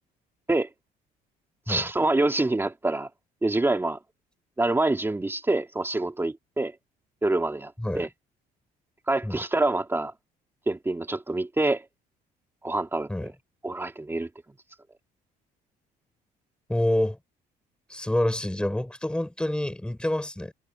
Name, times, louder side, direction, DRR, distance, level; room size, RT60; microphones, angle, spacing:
voice 1, 1.7-3.1 3.4-4.0 4.6-6.7 7.2-8.1 9.1-10.1 10.7-11.9 12.6-13.3 13.6-14.3, right 2 dB, 15° right, 2.9 m, -26 dB
voice 2, 7.8-8.1 9.2-9.4 13.1-13.3 16.7-17.2 17.9-20.5, left 1 dB, 5° left, 5.8 m, -27 dB
cardioid pair, 110°, 17 cm